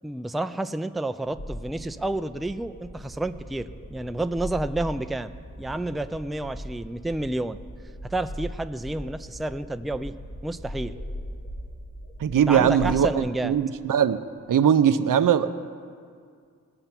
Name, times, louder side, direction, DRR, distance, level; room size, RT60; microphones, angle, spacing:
voice 1, 0.0-5.3 5.6-7.6 8.0-10.2 10.4-10.9 12.3-13.5, right 2 dB, ahead, 10 dB, 0.3 m, -30 dB
sound 1, 1.2-13.0, equal, 70° left, 4.0 m, -39 dB
voice 2, 12.2-14.2 14.5-15.5, right 8 dB, 85° right, 11 dB, 0.6 m, -20 dB
19.5 x 6.7 x 5.9 m, 2.1 s
wide cardioid pair, 70°, 32 cm